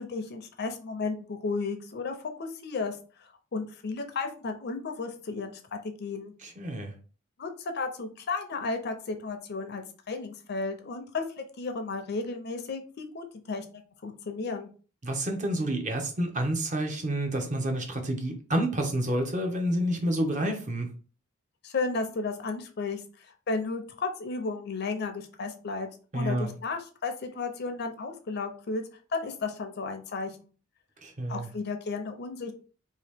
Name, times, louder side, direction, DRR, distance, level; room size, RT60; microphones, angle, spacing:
voice 1, 0.0-6.3 7.4-14.7 21.6-25.9 26.1-28.8 29.1-30.4 31.3-32.5, left 4 dB, 50° left, 0.5 m, -34 dB
voice 2, 6.4-6.9 15.0-20.9 26.1-26.5 31.0-31.5, right 1 dB, 35° right, 0.7 m, -29 dB
2.8 x 2.7 x 3.4 m
head